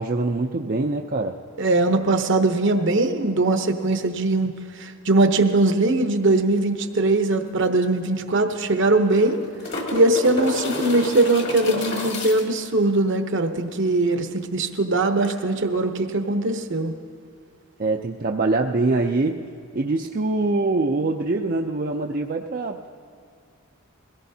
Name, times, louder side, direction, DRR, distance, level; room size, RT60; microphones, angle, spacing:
voice 1, 0.0-1.4 17.8-19.4 19.7-22.9, right 3 dB, 40° right, 2 dB, 0.5 m, -24 dB
voice 2, 1.6-4.5 4.8-9.4 9.9-16.9, right 2 dB, 60° right, 6 dB, 0.9 m, -21 dB
sound 1, 7.5-7.6 7.8-7.9 9.0-12.7 15.2-15.3, left 2 dB, 55° left, 1.7 m, -30 dB
22.0 x 17.0 x 2.8 m, 2.5 s
head